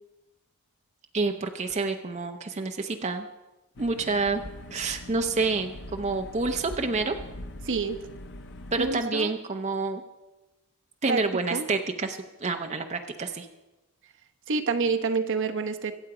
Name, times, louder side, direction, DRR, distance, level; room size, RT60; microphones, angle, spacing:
voice 1, 1.1-3.3 3.8-4.4 4.7-7.2 8.7-10.0 11.0-13.5, right 3 dB, 30° right, 5 dB, 0.8 m, -28 dB
sound 1, 3.8-8.9, left 1 dB, 55° left, 1.0 m, -42 dB
voice 2, 7.6-8.0 8.8-9.3 11.1-11.2 11.5-11.7 14.5-15.9, right 4 dB, 55° right, 6 dB, 1.0 m, -27 dB
24.0 x 8.1 x 4.9 m, 1.0 s
head